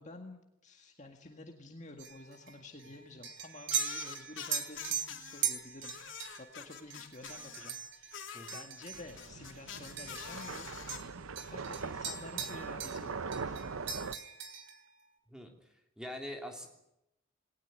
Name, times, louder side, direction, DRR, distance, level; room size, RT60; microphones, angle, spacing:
voice 1, 0.0-6.1 6.4-8.1 8.5-10.8 11.4-13.6, left 2 dB, 35° left, 3 dB, 1.9 m, -50 dB
sound 1, 2.0-10.6 10.9-13.1 13.3-14.8, right 8 dB, 55° right, 3.1 m, -40 dB
sound 2, 3.7-5.4 5.8-7.7 8.1-11.0, left 8 dB, 60° left, 3.1 m, -45 dB
voice 2, 8.3-8.6 15.3-15.5 16.0-16.7, left 1 dB, 5° right, 2 dB, 3.2 m, -43 dB
sound 3, 8.9-14.1, right 5 dB, 80° right, 0.8 m, -41 dB
20.0 x 19.0 x 9.3 m, 0.86 s
head